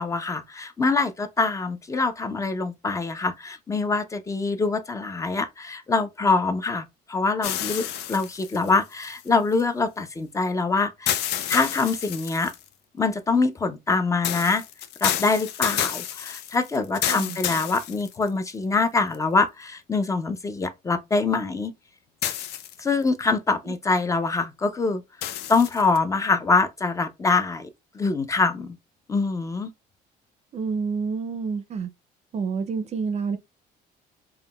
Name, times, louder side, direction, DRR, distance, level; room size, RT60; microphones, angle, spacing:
voice 1, 0.0-12.5 13.0-14.6 15.0-21.7 22.8-25.0 25.5-27.7 27.9-28.8 29.1-29.7, left 4 dB, 20° left, 0.4 m, -24 dB
sound 1, 7.4-9.6 11.1-12.7 14.2-18.5 19.1-19.2 22.2-23.0 25.2-26.0, left 11 dB, 85° left, 0.4 m, -30 dB
voice 2, 30.5-31.9 32.3-33.4, right 5 dB, 40° right, 0.4 m, -28 dB
3.6 x 2.2 x 2.2 m
cardioid pair, 110°, 17 cm